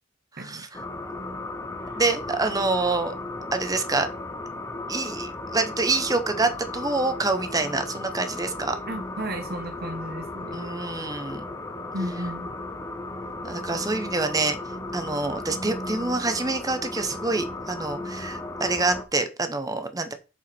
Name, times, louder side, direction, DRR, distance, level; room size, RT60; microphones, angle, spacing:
voice 1, 0.4-0.7 2.0-3.1 3.5-4.1 4.9-8.8 10.5-11.5 13.4-14.6 14.9-20.1, right 3 dB, 20° right, 0.9 m, -26 dB
sound 1, 0.7-19.0, left 2 dB, 15° left, 0.8 m, -35 dB
voice 2, 8.9-10.6 11.9-12.5, right 1 dB, 50° right, 1.3 m, -34 dB
7.2 x 4.8 x 4.4 m
head